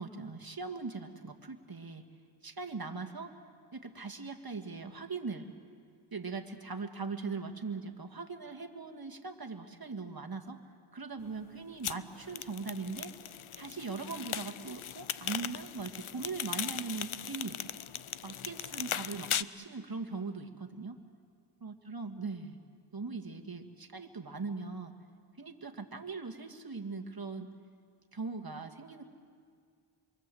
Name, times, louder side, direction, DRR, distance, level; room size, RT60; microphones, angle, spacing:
voice 1, 0.0-2.0 2.4-3.3 3.7-5.5 6.1-10.6 10.9-13.1 13.6-17.6 18.2-21.0 21.6-22.6 22.9-24.9 25.4-27.5 28.1-29.0, right 4 dB, 45° right, 5 dB, 1.9 m, -40 dB
sound 1, 11.8-19.4, left 9 dB, 75° left, 0.7 m, -38 dB
27.5 x 23.5 x 7.8 m, 2.1 s
wide cardioid pair, 50°, 49 cm